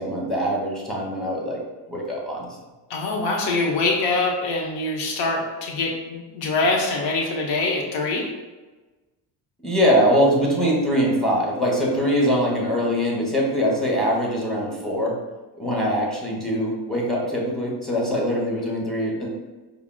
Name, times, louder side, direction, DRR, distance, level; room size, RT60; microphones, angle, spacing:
voice 1, 0.0-1.6 1.9-2.5 9.6-15.1 15.6-19.3, equal, ahead, -3 dB, 1.0 m, -22 dB
voice 2, 2.9-8.3, left 3 dB, 70° left, -1 dB, 0.9 m, -24 dB
4.7 x 2.0 x 2.3 m, 1.2 s
supercardioid pair, 85°, 46 cm